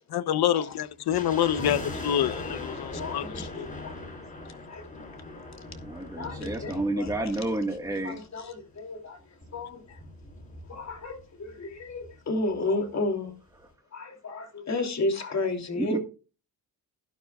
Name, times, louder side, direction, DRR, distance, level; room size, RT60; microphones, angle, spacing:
voice 1, 0.1-3.5, left 10 dB, 70° left, 0.9 m, -27 dB
sound 1, 1.1-8.4 8.6-8.7 9.4-11.2 11.5-11.6 11.8-12.1 12.5-12.6, left 2 dB, 20° left, 5.7 m, -40 dB
voice 2, 1.5-1.9 2.9-3.9 4.7-4.9 6.2-7.1 7.7-9.2 9.5-10.0 10.7-13.3 13.9-16.0, left 2 dB, 40° left, 2.9 m, -33 dB
voice 3, 5.8-8.2 15.8-16.0, right 1 dB, 10° right, 1.6 m, -30 dB
14.0 x 12.0 x 2.4 m
cardioid pair, 140°, 40 cm